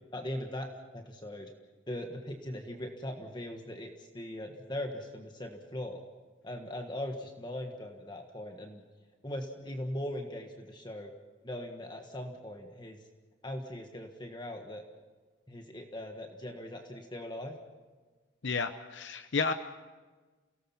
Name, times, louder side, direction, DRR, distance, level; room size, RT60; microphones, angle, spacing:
voice 1, 0.1-1.5 1.9-6.0 6.4-8.8 9.2-11.1 11.4-13.0 13.4-14.8 15.5-17.5, left 1 dB, 20° left, 3 dB, 1.5 m, -40 dB
voice 2, 18.4-19.5, left 4 dB, 65° left, 9 dB, 0.8 m, -31 dB
29.5 x 18.0 x 5.8 m, 1.3 s
head